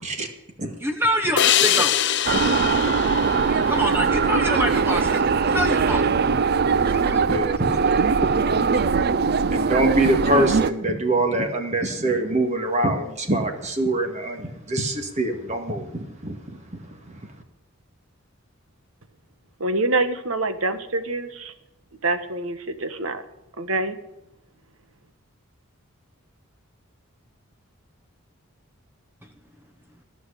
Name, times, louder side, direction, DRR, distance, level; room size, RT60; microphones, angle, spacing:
voice 1, 0.8-1.9 3.7-6.0 6.9-7.2, equal, 10° right, 5 dB, 1.0 m, -26 dB
sound 1, 1.4-4.7, left 11 dB, 55° left, 0.6 m, -24 dB
sound 2, 2.3-10.7, right 5 dB, 50° right, 0.5 m, -21 dB
voice 2, 7.3-7.8 8.2-17.2, right 1 dB, 35° right, 4 dB, 1.9 m, -25 dB
voice 3, 19.6-21.5 22.0-23.2 23.6-24.0, right 2 dB, 75° right, 10 dB, 1.4 m, -25 dB
15.0 x 6.3 x 9.9 m, 0.92 s
head